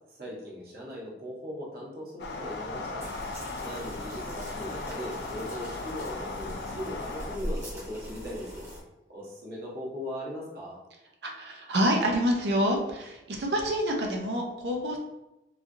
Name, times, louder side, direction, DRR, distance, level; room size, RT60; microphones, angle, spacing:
voice 1, 0.2-3.1 3.6-8.7 9.1-10.8, equal, 60° right, -5 dB, 1.0 m, -39 dB
sound 1, 2.2-7.4, left 3 dB, 70° left, 0.3 m, -37 dB
sound 2, 3.0-8.8, equal, 15° right, 0.9 m, -41 dB
voice 2, 11.2-15.0, equal, 75° right, 1 dB, 0.5 m, -27 dB
3.2 x 2.4 x 2.6 m, 0.95 s
head